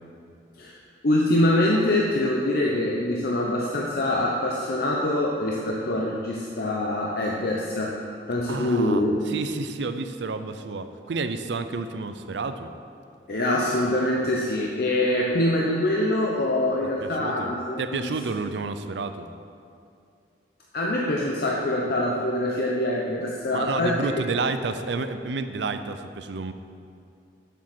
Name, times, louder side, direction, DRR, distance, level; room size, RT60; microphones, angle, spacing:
voice 1, 1.0-8.0 8.3-9.1 13.3-18.1 20.7-24.1, left 1 dB, 60° left, -2 dB, 0.8 m, -24 dB
voice 2, 8.5-12.7 17.0-17.5 17.8-19.3 23.5-26.5, right 3 dB, 75° right, 9 dB, 0.5 m, -30 dB
7.4 x 7.1 x 6.0 m, 2.4 s
head